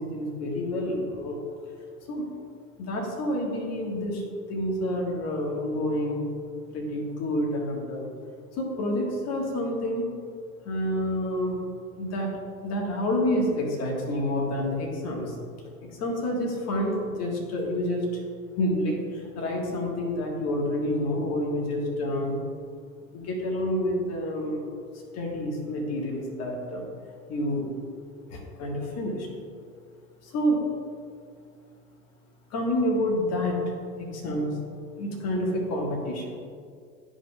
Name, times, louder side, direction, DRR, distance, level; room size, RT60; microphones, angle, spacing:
voice 1, 0.0-1.4 2.1-2.2 2.8-4.2 4.5-6.2 6.7-8.1 8.6-10.1 10.6-11.7 12.0-15.4 16.0-18.2 18.6-22.4 23.1-24.7 25.1-26.9 27.3-27.7 28.3-29.3 30.2-30.6 32.5-33.6 34.0-34.6 35.0-36.4, left 1 dB, 30° left, -1 dB, 1.6 m, -28 dB
10.5 x 5.2 x 2.4 m, 2.2 s
hypercardioid pair, 110°, 49 cm